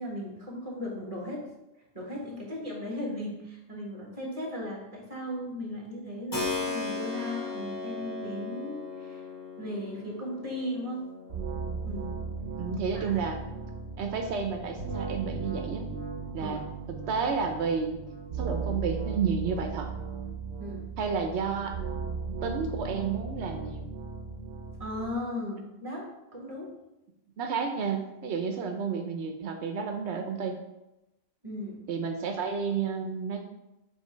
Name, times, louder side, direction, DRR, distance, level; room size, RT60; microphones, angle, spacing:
voice 1, 0.0-1.5 1.9-9.2 9.6-11.1 11.8-12.1 12.9-13.3 16.4-16.6 20.6-20.8 24.8-26.1 26.3-26.7 31.4-31.8, left 1 dB, 30° right, -2 dB, 1.6 m, -37 dB
Keyboard (musical), 6.3-14.9, left 3 dB, 20° left, 0.9 m, -38 dB
sound 1, 11.3-25.1, right 5 dB, 70° right, 1.1 m, -37 dB
voice 2, 12.6-13.4 14.0-15.9 16.3-16.6 16.9-18.0 18.4-19.9 21.0-21.8 22.4-23.9 27.4-30.6 31.9-33.4, right 5 dB, 90° right, 5 dB, 1.0 m, -31 dB
7.4 x 3.3 x 4.4 m, 0.93 s
omnidirectional pair, 1.1 m